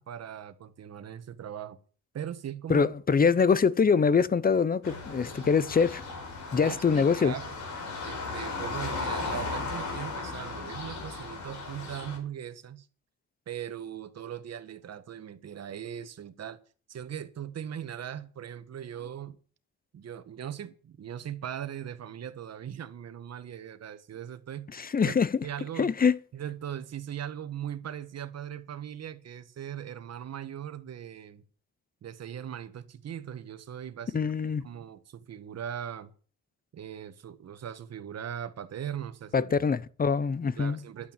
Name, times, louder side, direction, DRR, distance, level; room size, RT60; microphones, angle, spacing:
voice 1, 0.0-1.8 2.1-2.9 3.2-3.6 6.6-7.6 8.0-12.9 13.5-16.6 16.9-19.4 19.9-24.7 25.0-25.1 25.4-25.9 26.3-31.4 32.0-34.2 34.6-36.1 36.7-39.5 40.6-41.1, right 9 dB, 55° right, 1.7 m, -39 dB
voice 2, 2.7-6.0 6.5-7.3 24.7-25.4 25.8-26.2 34.1-34.6 39.3-40.8, left 5 dB, 30° left, 0.8 m, -24 dB
sound 1, 4.8-12.2, left 3 dB, 75° left, 5.6 m, -36 dB
11.5 x 8.9 x 7.4 m
cardioid pair, 90°, 30 cm